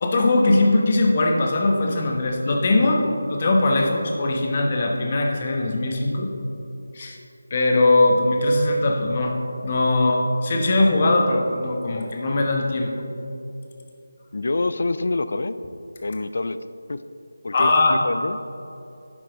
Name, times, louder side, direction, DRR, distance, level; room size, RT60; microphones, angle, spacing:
voice 1, 0.0-6.3 6.9-7.2 7.5-9.4 9.6-12.9 17.5-18.0, left 2 dB, 35° left, 2 dB, 1.1 m, -20 dB
voice 2, 14.3-15.5 16.0-16.6 16.9-17.0 17.4-18.4, left 2 dB, 60° left, 12 dB, 0.4 m, -26 dB
10.5 x 6.0 x 3.9 m, 2.7 s
figure-of-eight pair, 165°, 0 cm